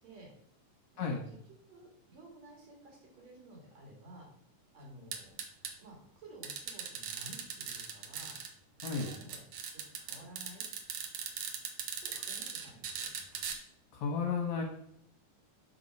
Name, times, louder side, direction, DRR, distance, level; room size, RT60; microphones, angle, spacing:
voice 1, 0.9-1.4 1.7-4.3 4.7-5.3 5.8-8.3 9.0-9.4 9.7-10.7 12.0-13.1, right 1 dB, 55° right, -1 dB, 2.9 m, -53 dB
sound 1, 5.1-5.7 6.4-8.5 8.8-13.6, right 7 dB, 85° right, 1.3 m, -40 dB
voice 2, 13.9-14.6, left 5 dB, 65° left, 1 dB, 2.0 m, -33 dB
7.4 x 4.3 x 5.2 m, 0.70 s
omnidirectional pair, 3.9 m